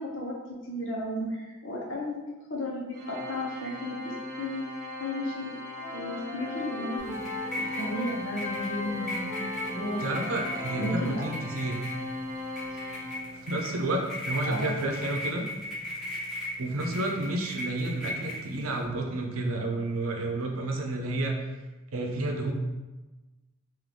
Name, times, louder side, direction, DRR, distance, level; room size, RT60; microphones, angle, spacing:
voice 1, 0.0-2.2 2.5-10.0 10.8-11.2 12.7-12.8 14.4-14.7, left 1 dB, 65° left, -3 dB, 1.0 m, -34 dB
Organ, 2.9-13.7, left 2 dB, 40° right, 0.6 m, -39 dB
Wind instrument woodwind instrument, 4.9-5.4 5.6-12.2, left 1 dB, 30° left, 1.3 m, -40 dB
sound 1, 7.0-18.8, left 1 dB, ahead, 1.4 m, -38 dB
voice 2, 10.0-11.8 13.4-15.5 16.6-21.3 21.9-22.5, right 2 dB, 90° right, 2 dB, 0.7 m, -30 dB
3.7 x 2.6 x 3.7 m, 1.1 s
head